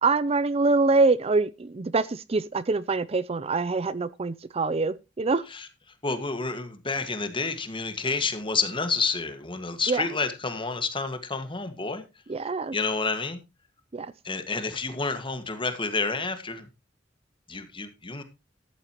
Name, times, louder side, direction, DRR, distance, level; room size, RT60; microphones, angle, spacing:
voice 1, 0.0-5.4 9.9-10.1 12.3-12.7 13.9-14.1, right 3 dB, 30° right, 0.5 m, -25 dB
voice 2, 6.0-12.0 12.7-13.4 14.2-16.7 17.5-18.2, left 4 dB, 30° left, 1.7 m, -29 dB
14.0 x 10.5 x 3.0 m
head